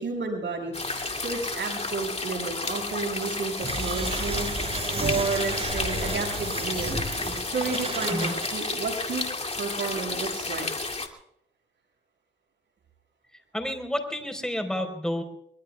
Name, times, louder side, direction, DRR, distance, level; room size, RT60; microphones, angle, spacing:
voice 1, 0.0-4.5 5.0-6.9 7.5-9.2 9.6-10.7, right 4 dB, 75° right, 0 dB, 6.5 m, -31 dB
sound 1, 0.7-11.1, left 3 dB, 35° left, 2.5 m, -32 dB
sound 2, 3.6-8.5, right 1 dB, 30° right, 7.2 m, -32 dB
voice 2, 13.5-15.2, left 1 dB, 5° left, 5 dB, 4.4 m, -30 dB
24.5 x 22.0 x 2.4 m, 0.76 s
cardioid pair, 55°, 19 cm